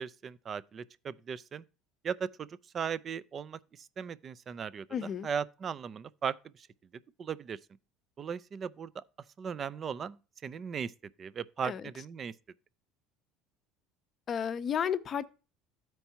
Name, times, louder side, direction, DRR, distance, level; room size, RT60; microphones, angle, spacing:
voice 1, 0.0-1.6 2.0-6.7 7.2-7.6 8.2-9.0 9.4-10.9 11.2-12.3, right 7 dB, 35° right, 0.4 m, -38 dB
voice 2, 4.9-5.3 11.6-11.8 14.3-15.2, left 8 dB, 40° left, 0.6 m, -32 dB
13.0 x 4.5 x 2.8 m
supercardioid pair, 110°, 0 cm